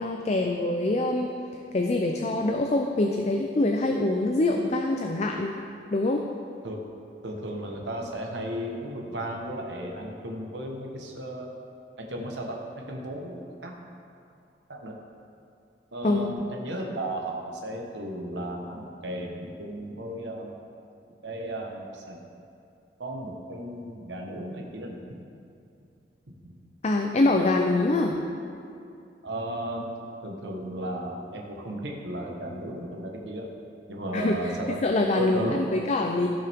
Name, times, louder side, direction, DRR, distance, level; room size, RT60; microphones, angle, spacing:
voice 1, 0.0-1.3 1.7-5.5 5.9-6.2 16.0-16.3 26.8-28.2 34.1-34.5 34.8-36.3, left 2 dB, 40° left, 3 dB, 0.5 m, -24 dB
voice 2, 7.2-11.5 12.0-13.7 14.7-14.9 15.9-20.5 21.2-22.2 23.0-25.2 26.3-26.6 27.4-27.5 29.2-29.8 30.2-33.5 33.9-34.8 35.1-35.6, right 1 dB, 80° right, 0 dB, 1.2 m, -34 dB
15.5 x 5.6 x 3.6 m, 2.5 s
head